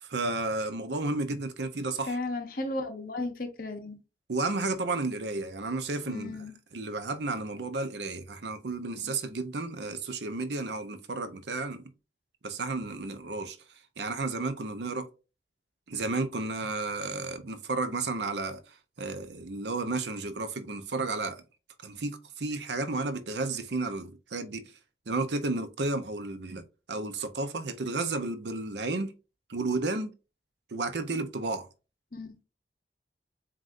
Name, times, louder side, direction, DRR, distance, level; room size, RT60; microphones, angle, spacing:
voice 1, 0.0-2.2 4.3-6.5 6.7-11.8 12.4-13.6 14.0-15.1 15.9-18.6 19.0-21.4 21.8-24.6 25.1-26.6 26.9-29.1 29.5-30.1 30.7-31.7, right 3 dB, 80° right, 0.7 m, -32 dB
voice 2, 2.1-4.0 6.1-6.5 9.0-9.1 32.1-32.3, left 2 dB, 55° left, 0.9 m, -34 dB
7.5 x 2.6 x 2.6 m
head